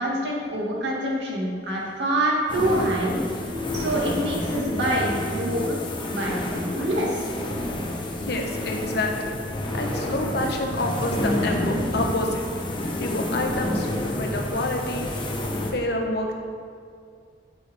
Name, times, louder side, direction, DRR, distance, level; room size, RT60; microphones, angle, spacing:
voice 1, 0.0-5.8 6.1-7.3, right 1 dB, 75° right, -3 dB, 2.0 m, -26 dB
sound 1, 1.7-11.6, left 4 dB, ahead, 1.0 m, -39 dB
sound 2, 2.5-15.7, left 1 dB, 30° left, 1.0 m, -29 dB
voice 2, 8.2-9.3 9.7-12.4 13.0-13.9 14.1-15.1 15.7-16.3, left 1 dB, 65° left, 2 dB, 1.1 m, -28 dB
12.5 x 6.3 x 3.5 m, 2.2 s
head